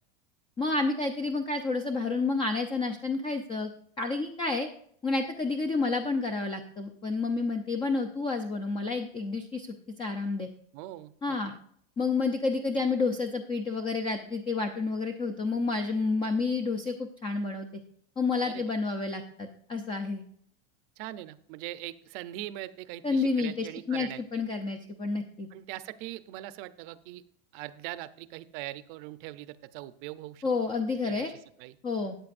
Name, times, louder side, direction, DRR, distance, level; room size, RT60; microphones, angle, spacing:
voice 1, 0.6-3.7 4.0-4.7 5.0-9.7 10.0-10.5 11.2-11.5 12.0-17.7 18.2-20.2 23.0-25.5 30.4-31.3 31.8-32.2, left 3 dB, 15° left, 6 dB, 0.6 m, -30 dB
voice 2, 10.7-11.6 18.4-18.6 21.0-24.2 25.5-27.2 27.5-30.4 31.0-31.8, right 15 dB, 55° right, 14 dB, 0.7 m, -41 dB
13.5 x 8.9 x 2.5 m, 0.65 s
supercardioid pair, 160°, 31 cm